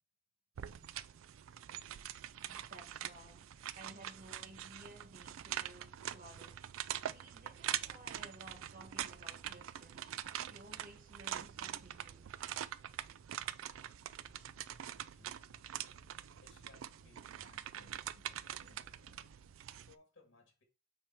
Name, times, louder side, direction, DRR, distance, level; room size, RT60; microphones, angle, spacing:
sound 1, 0.6-19.9, right 11 dB, 85° right, 0.4 m, -44 dB
voice 1, 2.5-6.7 7.0-10.1 10.5-12.3, right 1 dB, 45° right, 1.4 m, -56 dB
sound 2, 13.8-19.6, left 3 dB, 40° left, 0.5 m, -68 dB
voice 2, 14.8-15.4 16.3-19.4 19.8-20.6, left 3 dB, 65° left, 2.1 m, -66 dB
8.5 x 3.1 x 4.4 m
head